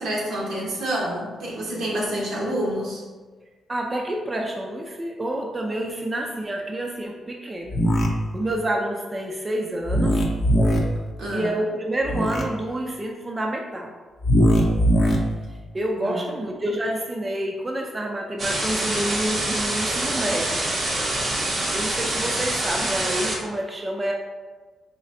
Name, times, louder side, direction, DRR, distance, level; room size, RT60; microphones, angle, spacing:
voice 1, 0.0-3.0 11.2-11.5 15.9-16.2, right 1 dB, 85° right, -4 dB, 1.0 m, -28 dB
voice 2, 3.7-7.8 8.3-10.2 11.3-13.9 15.7-20.6 21.7-24.1, right 1 dB, 20° right, 1 dB, 0.3 m, -28 dB
sound 1, 7.7-8.1 9.9-10.8 12.0-12.4 14.2-15.2, equal, 50° left, 0.6 m, -19 dB
sound 2, 18.4-23.3, right 1 dB, 40° right, 0.7 m, -26 dB
4.1 x 3.2 x 2.6 m, 1.4 s
cardioid pair, 155°, 0 cm